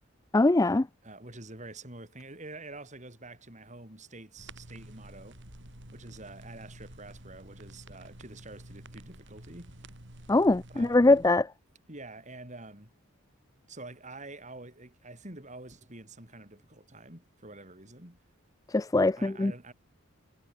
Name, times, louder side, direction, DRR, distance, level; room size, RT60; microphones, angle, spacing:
voice 1, 0.3-0.9 10.3-11.5 18.7-19.5, left 2 dB, 15° left, 0.4 m, -22 dB
voice 2, 1.0-5.4 5.9-9.8 10.2-10.3 10.7-11.2 11.9-12.9 13.7-18.2 19.2-19.7, right 2 dB, 35° right, 5.9 m, -47 dB
sound 1, 4.4-11.3, right 1 dB, 60° right, 4.6 m, -50 dB
head